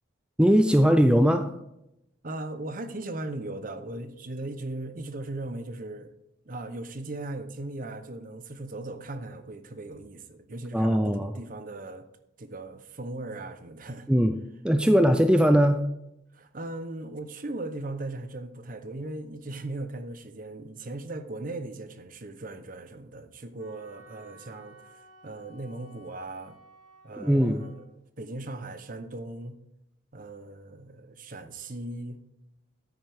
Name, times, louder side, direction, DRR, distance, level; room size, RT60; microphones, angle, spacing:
voice 1, 0.4-1.6 10.7-11.4 14.1-15.8 27.2-27.6, equal, 5° right, 8 dB, 0.4 m, -21 dB
voice 2, 2.2-6.1 6.5-12.0 12.4-14.1 16.3-26.6 27.0-27.7 28.2-29.6 30.1-32.2, right 2 dB, 45° right, 9 dB, 0.8 m, -38 dB
Wind instrument woodwind instrument, 23.6-27.8, right 2 dB, 85° right, 3.7 m, -54 dB
9.5 x 8.8 x 3.5 m, 0.85 s
head